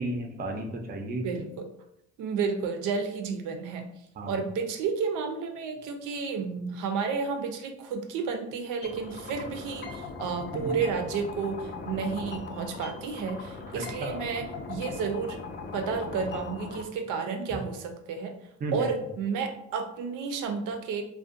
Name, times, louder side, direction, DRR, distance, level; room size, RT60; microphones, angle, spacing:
voice 1, 0.0-1.3 4.1-4.4 10.5-10.8 14.0-14.2 17.5-17.6 18.6-18.9, right 2 dB, 30° right, 3 dB, 0.5 m, -33 dB
voice 2, 1.2-1.7 2.2-3.9 4.3-15.4 15.7-18.3 18.7-21.0, right 5 dB, 85° right, 5 dB, 0.5 m, -31 dB
sound 1, 8.8-16.8, left 4 dB, 40° left, 0.4 m, -39 dB
2.4 x 2.2 x 2.5 m, 0.75 s
cardioid pair, 90°, 30 cm